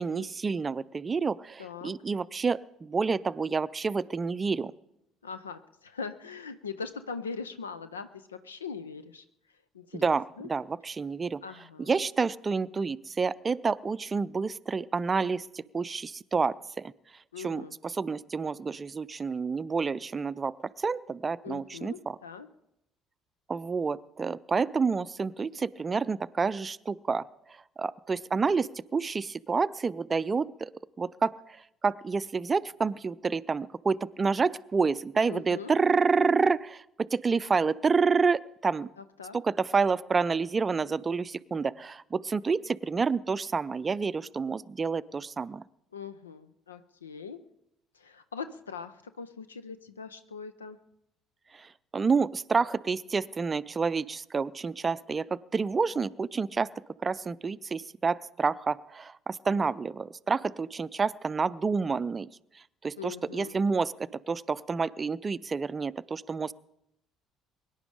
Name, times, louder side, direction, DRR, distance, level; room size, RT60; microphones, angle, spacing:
voice 1, 0.0-4.7 9.9-11.4 11.8-16.9 17.4-22.2 23.5-27.2 27.8-30.7 31.0-31.6 31.8-38.9 39.3-45.6 51.5-56.7 57.0-62.3 62.8-63.9 64.3-66.5, right 4 dB, 30° right, 16 dB, 0.5 m, -29 dB
voice 2, 1.6-1.9 5.2-9.2 9.7-10.5 11.4-12.0 17.3-17.7 21.4-22.5 35.3-35.7 39.0-39.4 45.9-47.4 47.9-50.8 63.0-63.6, left 5 dB, 80° left, 12 dB, 0.5 m, -41 dB
23.0 x 10.5 x 4.9 m, 0.83 s
figure-of-eight pair, 55°, 0 cm